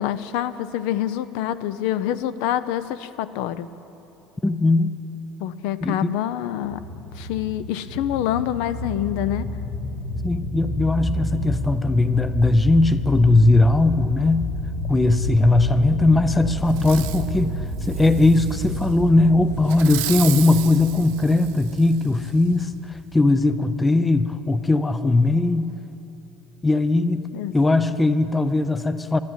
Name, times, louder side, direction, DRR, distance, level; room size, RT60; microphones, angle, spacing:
voice 1, 0.0-3.7 5.4-6.8 7.2-9.5 27.3-27.5, left 11 dB, 65° left, 14 dB, 0.5 m, -26 dB
voice 2, 4.4-5.0 5.8-6.1 10.2-14.5 14.9-25.8 26.6-29.2, left 2 dB, 10° left, 12 dB, 0.4 m, -19 dB
sound 1, 6.6-23.6, left 1 dB, 35° left, 1.1 m, -30 dB
Fireworks, 16.7-17.3 17.8-18.9 19.7-22.0 22.6-22.7, right 16 dB, 85° right, 0.7 m, -34 dB
12.5 x 11.5 x 9.1 m, 2.9 s
cardioid pair, 165°, 0 cm